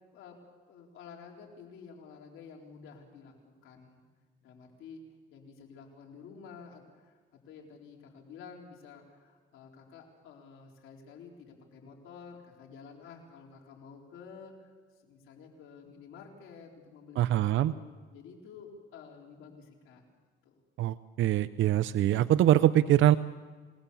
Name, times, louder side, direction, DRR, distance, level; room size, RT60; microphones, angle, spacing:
voice 1, 0.7-4.0 4.4-5.0 5.3-14.7 15.0-20.0 20.4-20.6, left 5 dB, 85° left, 0 dB, 4.2 m, -51 dB
voice 2, 17.2-17.7 20.8-23.2, right 13 dB, 75° right, 13 dB, 0.6 m, -24 dB
28.5 x 18.5 x 7.1 m, 1.5 s
cardioid pair, 90°, 20 cm